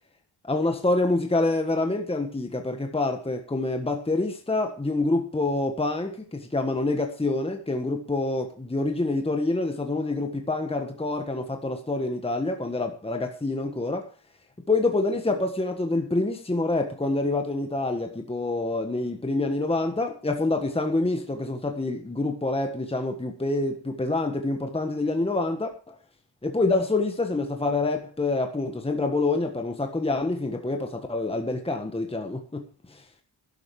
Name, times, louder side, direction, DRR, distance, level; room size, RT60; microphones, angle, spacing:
voice 1, 0.4-14.1 14.7-25.9 26.4-33.0, left 2 dB, 15° left, 1.5 m, -27 dB
12.5 x 12.0 x 4.9 m
wide cardioid pair, 175°, 42 cm